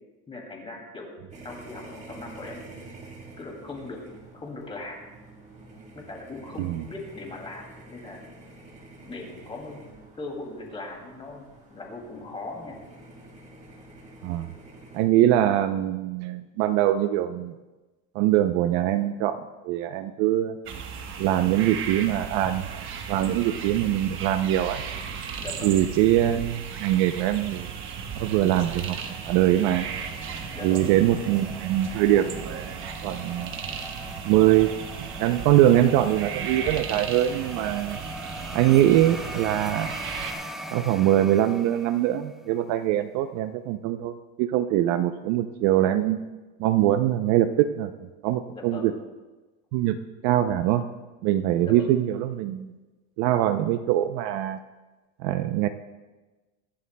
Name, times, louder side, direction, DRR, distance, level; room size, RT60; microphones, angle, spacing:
voice 1, 0.3-1.2 1.4-2.8 3.4-4.0 4.3-5.0 5.9-8.2 9.0-9.8 10.2-12.8 25.4-25.8 30.5-30.8 48.5-49.0 51.6-52.0, left 2 dB, 15° left, 0 dB, 2.5 m, -39 dB
sound 1, 1.3-15.0, right 2 dB, 20° right, 1.6 m, -48 dB
voice 2, 14.9-17.5 18.1-19.4 19.6-20.5 21.2-22.6 23.1-24.8 25.6-27.7 28.2-29.0 29.3-29.9 30.6-33.5 34.2-34.8 35.2-38.0 38.5-39.9 40.7-46.2 46.6-47.9 48.2-48.9 49.7-50.0 50.2-50.8 51.2-52.7 53.2-54.6 55.2-55.7, right 12 dB, 50° right, 10 dB, 0.5 m, -23 dB
sound 2, 20.7-40.3, right 7 dB, 35° right, 1.1 m, -36 dB
sound 3, 27.8-42.5, right 1 dB, ahead, 0.3 m, -41 dB
23.0 x 11.5 x 2.2 m, 1.2 s
cardioid pair, 160°, 35 cm